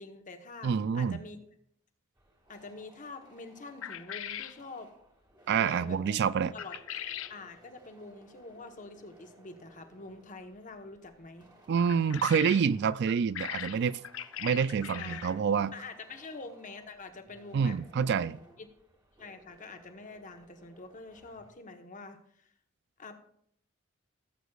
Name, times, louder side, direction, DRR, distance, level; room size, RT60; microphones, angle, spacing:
voice 1, 0.0-1.4 2.5-4.9 5.6-6.2 6.5-6.7 7.3-11.5 15.0-15.2 15.7-17.7 18.6-18.7 19.2-22.5 23.0-23.2, left 3 dB, 40° left, 6 dB, 1.1 m, -46 dB
voice 2, 0.6-1.2 5.5-6.5 11.7-14.0 14.4-15.7 17.5-18.4, right 6 dB, 55° right, 17 dB, 0.3 m, -27 dB
sound 1, 2.2-21.5, right 1 dB, 20° right, 1.8 m, -60 dB
sound 2, 3.8-4.6 6.6-7.4 11.8-12.7 13.1-15.4, left 10 dB, 70° left, 0.5 m, -40 dB
16.5 x 8.1 x 2.4 m, 0.67 s
head